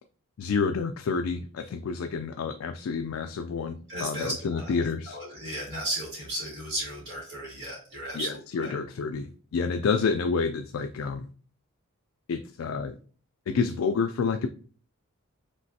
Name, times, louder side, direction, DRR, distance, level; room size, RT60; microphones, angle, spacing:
voice 1, 0.4-5.2 8.1-11.3 12.3-13.0 13.5-14.5, left 5 dB, 70° left, 7 dB, 0.3 m, -29 dB
voice 2, 3.9-8.8, right 1 dB, 55° right, -4 dB, 2.2 m, -35 dB
5.3 x 3.2 x 2.7 m, 0.42 s
head